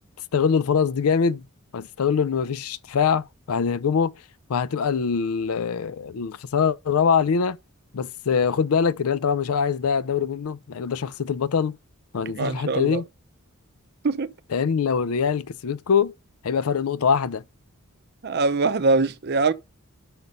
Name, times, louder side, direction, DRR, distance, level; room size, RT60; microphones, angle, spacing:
voice 1, 0.3-1.4 1.7-4.1 4.5-7.6 7.9-11.8 12.1-13.0 14.5-16.1 16.4-17.4, left 6 dB, 75° left, 0.4 m, -23 dB
voice 2, 12.4-13.0 14.0-14.3 18.2-19.5, right 3 dB, 45° right, 0.6 m, -22 dB
5.9 x 5.4 x 5.2 m
head